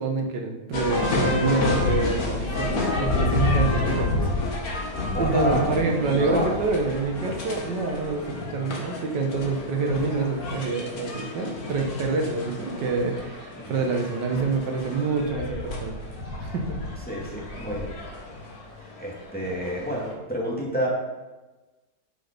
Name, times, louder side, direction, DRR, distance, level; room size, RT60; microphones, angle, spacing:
voice 1, 0.0-4.2 5.2-16.0 16.4-16.8, right 4 dB, 75° right, 2 dB, 1.8 m, -27 dB
sound 1, 0.7-20.1, left 2 dB, 55° left, 2.1 m, -30 dB
voice 2, 5.1-5.8 6.1-6.5 13.6-13.7 17.1-17.9 19.0-20.9, equal, 5° left, -4 dB, 2.2 m, -29 dB
10.5 x 6.2 x 5.2 m, 1.2 s
omnidirectional pair, 1.9 m